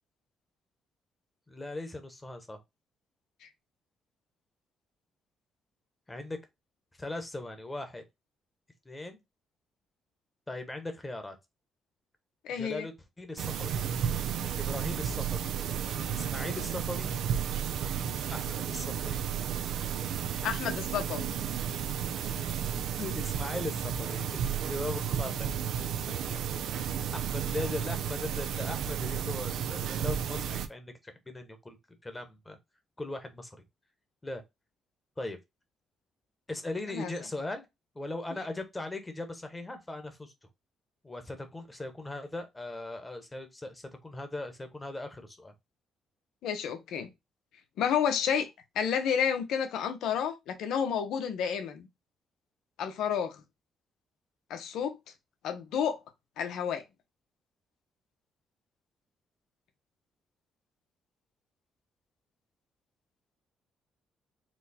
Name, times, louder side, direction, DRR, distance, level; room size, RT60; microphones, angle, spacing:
voice 1, 1.5-2.6 6.1-6.4 7.0-8.0 8.8-9.2 10.5-11.4 12.6-13.8 14.6-15.5 16.1-17.1 18.3-19.2 22.6-25.5 27.1-31.8 32.0-32.6 33.0-33.6 34.2-34.4 35.2-35.4 36.5-37.7 37.9-40.3 41.0-45.5, left 2 dB, 15° left, 1.1 m, -39 dB
voice 2, 12.4-12.9 20.4-21.3 36.9-37.1 46.4-47.1 47.8-48.5 48.7-51.9 52.8-53.4 54.5-55.0 55.4-56.0 56.4-56.8, left 8 dB, 80° left, 0.9 m, -30 dB
sound 1, 13.4-30.7, right 8 dB, 80° right, 0.5 m, -33 dB
4.3 x 2.3 x 4.2 m
cardioid pair, 90°, 0 cm